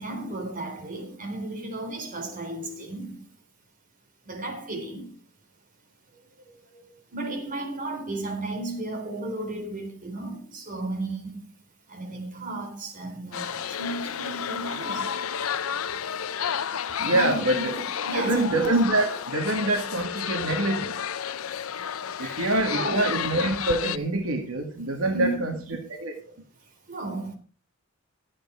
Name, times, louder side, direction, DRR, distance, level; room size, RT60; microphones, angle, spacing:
voice 1, 0.0-3.3 4.3-5.2 7.1-11.5 11.9-15.3 17.1-18.6 22.2-23.3 25.1-25.7 26.9-27.3, right 2 dB, 40° right, 3.6 m, -34 dB
sound 1, 13.3-24.0, left 8 dB, 85° left, 0.6 m, -31 dB
voice 2, 17.0-17.8 18.1-21.0 22.2-25.5 26.0-26.3, right 1 dB, 90° right, 2.1 m, -25 dB
13.0 x 8.6 x 4.9 m
head